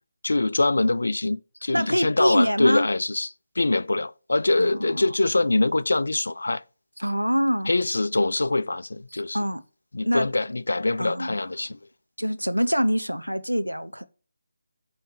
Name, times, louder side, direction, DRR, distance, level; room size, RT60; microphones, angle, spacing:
voice 1, 0.2-3.3 3.6-6.6 7.7-9.4 9.9-11.8, left 2 dB, 60° left, 0.4 m, -24 dB
voice 2, 1.7-2.9 4.6-5.1 7.0-7.7 9.1-9.6 10.1-10.3 11.0-11.4 12.2-14.0, equal, 90° right, 0.8 m, -25 dB
9.0 x 3.2 x 6.6 m
figure-of-eight pair, 155°, 0 cm